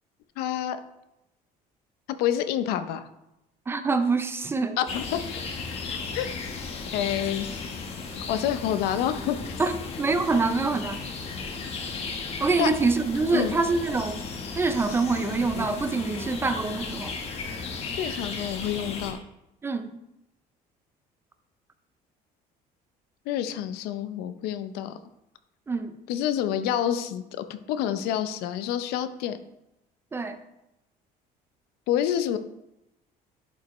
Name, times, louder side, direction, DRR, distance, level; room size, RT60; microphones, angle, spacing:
voice 1, 0.4-0.8 2.2-3.1 4.8-5.2 5.9-6.3 6.9-7.5 8.3-9.6 12.6-12.7 13.3-13.6 18.0-19.2 23.3-24.9 26.1-29.4 31.9-32.4, left 10 dB, 90° left, 10 dB, 0.6 m, -28 dB
voice 2, 3.7-4.8 9.6-11.0 12.4-14.3 14.6-17.1 19.6-20.0 25.7-25.9 30.1-30.4, right 3 dB, 15° right, 10 dB, 0.4 m, -25 dB
sound 1, 4.9-19.1, left 4 dB, 40° left, 1.1 m, -35 dB
11.0 x 5.2 x 3.1 m, 0.90 s
cardioid pair, 170°, 16 cm